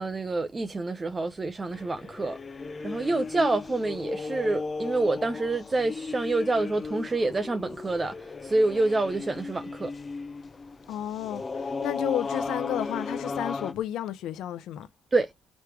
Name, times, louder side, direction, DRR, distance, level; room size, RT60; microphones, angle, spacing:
voice 1, 0.0-2.4 2.8-9.9 15.1-15.3, right 2 dB, 25° right, 0.5 m, -27 dB
sound 1, 1.7-13.7, left 4 dB, 35° left, 0.7 m, -35 dB
voice 2, 10.9-14.9, left 12 dB, 85° left, 0.6 m, -32 dB
3.3 x 3.1 x 4.6 m
cardioid pair, 90°, 0 cm